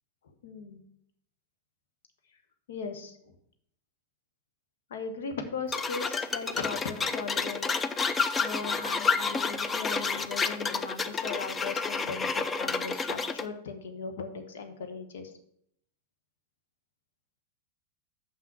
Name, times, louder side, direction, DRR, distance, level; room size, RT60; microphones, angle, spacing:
voice 1, 0.4-0.8 2.7-3.3 4.9-15.3, left 5 dB, 60° left, 7 dB, 1.1 m, -38 dB
sound 1, 5.7-13.5, left 4 dB, 15° left, 0.5 m, -30 dB
6.5 x 5.9 x 6.1 m, 0.70 s
figure-of-eight pair, 90°, 0 cm